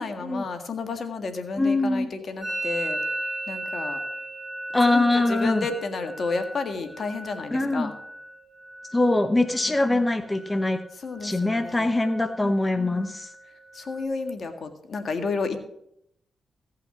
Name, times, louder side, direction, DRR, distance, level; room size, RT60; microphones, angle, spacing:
voice 1, 0.0-3.0 3.5-4.0 4.9-7.9 9.6-10.0 11.0-11.9 12.4-13.1 13.7-15.6, left 4 dB, 60° left, 7 dB, 1.9 m, -32 dB
voice 2, 1.6-2.2 4.7-5.7 7.5-7.9 8.9-10.8 11.2-13.3, left 2 dB, 20° left, 9 dB, 1.0 m, -23 dB
Musical instrument, 2.4-10.1 10.3-10.9 11.2-11.7 12.0-14.0, right 1 dB, 15° right, 6.3 m, -36 dB
16.0 x 5.8 x 7.2 m, 0.74 s
supercardioid pair, 50°, 0 cm